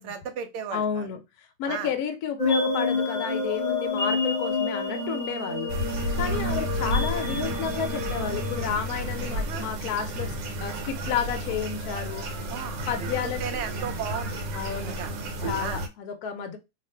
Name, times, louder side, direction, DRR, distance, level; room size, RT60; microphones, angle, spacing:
voice 1, 0.0-1.1 1.7-1.9 6.2-6.6 9.3-9.7 12.5-14.4 14.8-15.1 15.6-15.8, right 7 dB, 65° right, 7 dB, 0.8 m, -35 dB
voice 2, 0.7-5.7 6.2-10.3 10.6-12.3 12.9-13.6 14.5-15.0 15.4-16.6, left 7 dB, 70° left, 6 dB, 1.0 m, -31 dB
sound 1, 2.4-8.7, left 2 dB, 40° left, 0.8 m, -29 dB
sound 2, 5.7-15.9, equal, 90° right, 1.4 m, -31 dB
2.8 x 2.5 x 4.2 m, 0.24 s
omnidirectional pair, 1.8 m